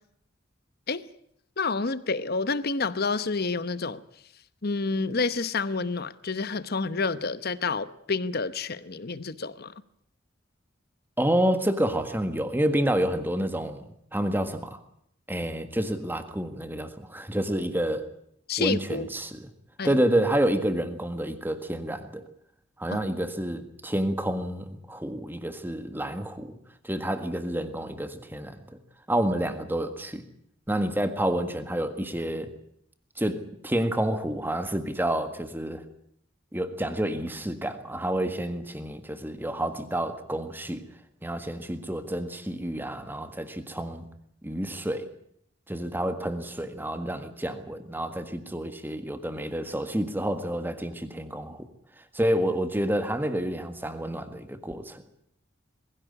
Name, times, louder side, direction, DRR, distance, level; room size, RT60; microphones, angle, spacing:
voice 1, 1.6-4.0 4.6-9.7 18.5-19.1 19.8-20.0 22.9-23.0, left 4 dB, 50° left, 1.0 m, -29 dB
voice 2, 11.2-13.8 14.1-14.8 15.3-18.1 18.6-19.5 19.8-22.2 22.8-26.6 26.8-28.8 29.1-30.2 30.7-32.5 33.2-35.8 36.5-40.8 41.2-44.1 44.4-45.1 45.7-51.7 52.1-55.0, right 1 dB, 10° right, 1.7 m, -29 dB
21.0 x 16.5 x 9.8 m
head